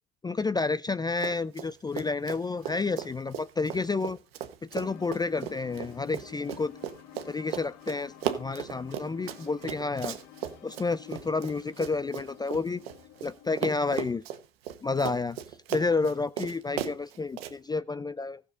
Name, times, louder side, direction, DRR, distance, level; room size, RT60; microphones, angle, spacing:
voice 1, 0.2-4.2 4.7-6.7 7.3-10.2 10.6-12.9 13.2-14.2 14.8-15.4 15.7-18.4, left 3 dB, 15° left, 16 dB, 0.4 m, -30 dB
Run, 1.1-1.7 1.9-13.3 13.6-17.5, right 10 dB, 85° right, 1.2 m, -36 dB
sound 1, 4.7-13.5, left 10 dB, 60° left, 1.4 m, -50 dB
15.0 x 6.9 x 3.9 m, 0.35 s
hypercardioid pair, 75°, 30 cm